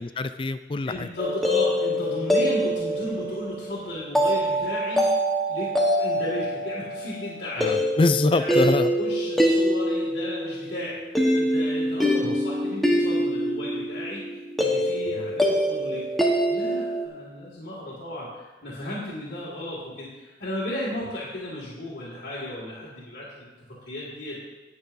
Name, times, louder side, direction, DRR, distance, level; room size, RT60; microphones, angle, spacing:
voice 1, 0.0-1.1 7.6-8.9 12.2-12.4 15.2-15.3, left 3 dB, 30° left, 11 dB, 0.4 m, -24 dB
voice 2, 0.9-5.1 5.5-8.0 8.3-11.0 11.3-16.0 16.5-24.4, left 1 dB, 65° left, -7 dB, 2.2 m, -35 dB
sound 1, 1.2-17.1, equal, ahead, 1.1 m, -25 dB
18.5 x 6.8 x 2.7 m, 1.2 s
head